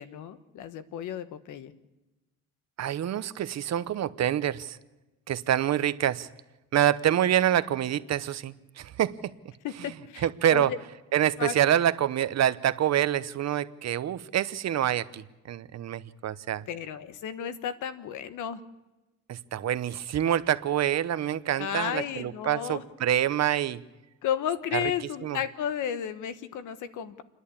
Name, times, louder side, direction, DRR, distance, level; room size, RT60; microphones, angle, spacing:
voice 1, 0.0-1.7 9.6-10.8 11.4-11.8 16.7-18.6 21.6-22.8 24.2-27.2, left 9 dB, 85° left, 12 dB, 1.3 m, -33 dB
voice 2, 2.8-4.8 5.3-6.3 6.7-9.3 10.2-10.7 11.1-16.6 19.3-23.8 24.7-24.9 25.2-25.4, right 11 dB, 60° right, 14 dB, 0.9 m, -26 dB
28.5 x 11.0 x 8.5 m, 1.1 s
cardioid pair, 90°, 30 cm